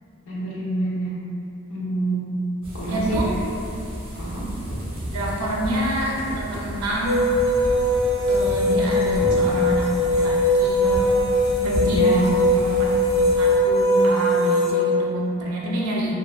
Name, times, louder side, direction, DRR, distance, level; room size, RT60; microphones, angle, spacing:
voice 1, 0.3-1.1 1.7-2.3 2.7-3.2 4.2-4.5 11.8-12.3, right 2 dB, 75° left, -7 dB, 0.7 m, -27 dB
sound 1, 2.6-13.6, equal, 25° right, 0.5 m, -32 dB
voice 2, 2.9-3.3 5.1-7.3 8.3-11.1 11.6-12.2 12.6-12.9 13.4-16.1, equal, 80° right, -4 dB, 0.4 m, -27 dB
sound 2, 7.0-14.7, left 1 dB, 20° left, 1.0 m, -20 dB
2.4 x 2.2 x 2.3 m, 2.7 s
head